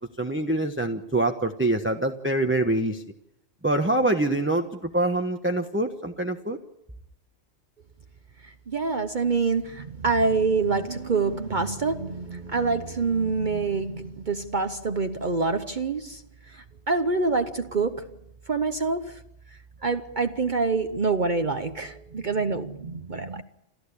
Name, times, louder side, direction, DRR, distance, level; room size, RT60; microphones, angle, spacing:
voice 1, 0.2-3.0 3.6-6.6, right 1 dB, 10° right, 1.1 m, -25 dB
voice 2, 8.7-16.2 16.5-18.1 18.5-19.2 19.8-23.4, right 4 dB, 45° right, 1.0 m, -26 dB
29.0 x 14.5 x 8.5 m
omnidirectional pair, 1.2 m